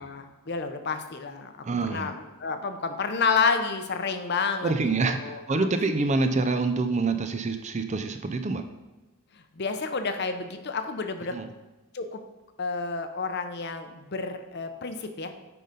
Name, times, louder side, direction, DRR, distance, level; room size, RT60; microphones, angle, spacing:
voice 1, 0.0-1.6 1.8-4.7 5.0-5.7 9.3-11.3 11.9-12.2 12.6-15.3, left 4 dB, 50° left, 7 dB, 0.7 m, -30 dB
voice 2, 1.6-2.1 4.6-8.7 11.3-11.5, right 3 dB, 30° right, 8 dB, 0.5 m, -26 dB
9.3 x 3.9 x 5.4 m, 1.1 s
head